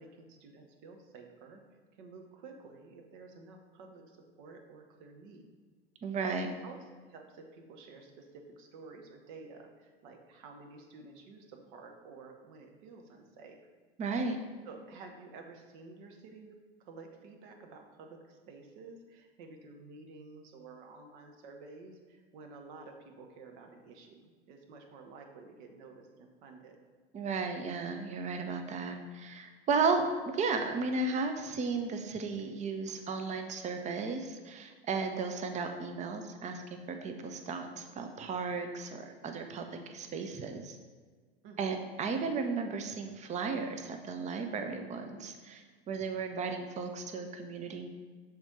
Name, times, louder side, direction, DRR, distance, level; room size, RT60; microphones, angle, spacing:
voice 1, 0.0-1.6 2.0-5.5 6.1-13.7 14.6-26.8 41.4-41.8, right 3 dB, 50° right, 4 dB, 0.9 m, -51 dB
voice 2, 6.0-6.5 14.0-14.4 27.1-40.8 41.6-47.9, right 4 dB, 25° right, 6 dB, 0.6 m, -34 dB
6.0 x 3.8 x 4.1 m, 1.5 s
figure-of-eight pair, 75°, 31 cm